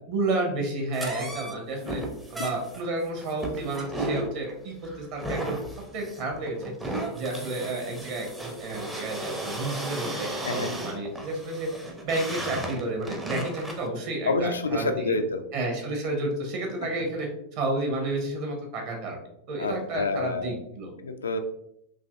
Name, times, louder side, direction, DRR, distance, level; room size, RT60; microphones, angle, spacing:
voice 1, 0.1-2.0 2.3-5.6 5.9-6.6 6.8-11.7 12.0-15.1 15.5-19.2 19.5-20.9, right 2 dB, 45° right, 1 dB, 1.1 m, -31 dB
sound 1, 0.9-13.9, right 1 dB, 5° right, 0.6 m, -35 dB
voice 2, 14.3-15.4 19.6-20.6 21.0-21.4, left 3 dB, 70° left, 7 dB, 0.3 m, -28 dB
4.0 x 2.8 x 2.5 m, 0.76 s
figure-of-eight pair, 90°, 0 cm